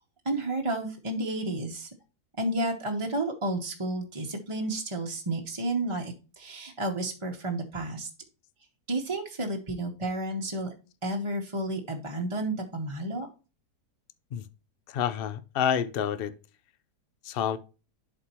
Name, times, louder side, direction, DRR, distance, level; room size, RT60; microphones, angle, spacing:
voice 1, 0.2-1.9 2.4-8.1 8.9-10.7 11.0-13.3, right 2 dB, 25° right, 0.8 m, -31 dB
voice 2, 14.9-16.3 17.2-17.6, left 8 dB, 90° left, 0.5 m, -28 dB
11.0 x 4.3 x 2.9 m
omnidirectional pair, 1.7 m